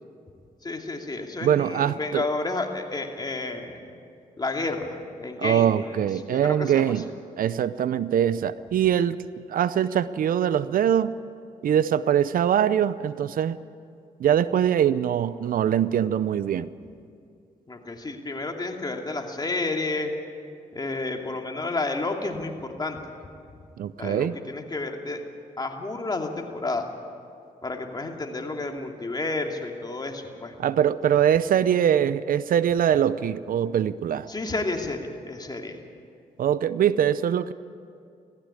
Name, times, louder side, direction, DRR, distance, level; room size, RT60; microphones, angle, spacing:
voice 1, 0.6-3.8 4.4-6.0 6.3-6.9 17.7-20.1 20.7-23.1 24.0-25.2 25.6-26.9 27.6-30.5 34.3-35.8, left 3 dB, 25° left, 2 dB, 2.7 m, -31 dB
voice 2, 1.4-2.3 5.4-7.1 7.4-9.2 9.5-11.1 11.6-13.6 14.2-16.7 23.8-24.4 30.6-34.3 36.4-37.5, right 9 dB, 70° right, 16 dB, 0.6 m, -23 dB
17.5 x 15.0 x 9.8 m, 2.4 s
cardioid pair, 70°, 15 cm